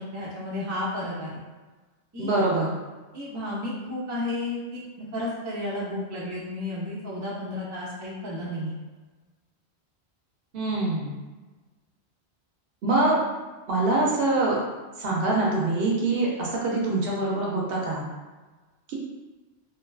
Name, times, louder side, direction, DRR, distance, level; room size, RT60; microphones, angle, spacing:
voice 1, 0.0-1.4 2.1-2.3 3.1-8.7, left 1 dB, 25° right, -7 dB, 0.4 m, -32 dB
voice 2, 2.2-2.7 10.5-11.1 12.8-13.2 13.7-14.6 15.0-18.1 18.9-19.0, right 2 dB, 65° right, -3 dB, 0.7 m, -24 dB
2.5 x 2.2 x 2.3 m, 1.3 s
omnidirectional pair, 1.1 m